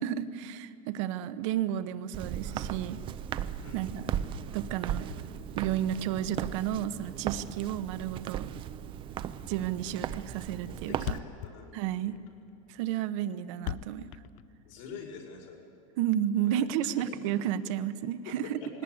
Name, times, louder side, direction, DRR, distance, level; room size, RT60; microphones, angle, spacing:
voice 1, 0.0-3.0 3.7-4.1 4.5-5.1 5.6-8.5 9.5-11.2 11.7-12.2 12.7-14.1 16.0-18.6, right 11 dB, 60° right, 12 dB, 1.0 m, -32 dB
Walk footsteps, 2.1-11.2, right 10 dB, 30° right, 0.6 m, -37 dB
Thump thud, 9.6-9.8 10.1-10.2 10.4-10.5 10.7-10.8 11.0-15.0, left 13 dB, 45° left, 0.6 m, -39 dB
voice 2, 10.6-12.1 14.6-15.6 16.4-17.1 18.3-18.7, left 6 dB, 70° left, 0 dB, 5.7 m, -46 dB
19.5 x 18.0 x 9.4 m, 2.7 s
supercardioid pair, 145°, 18 cm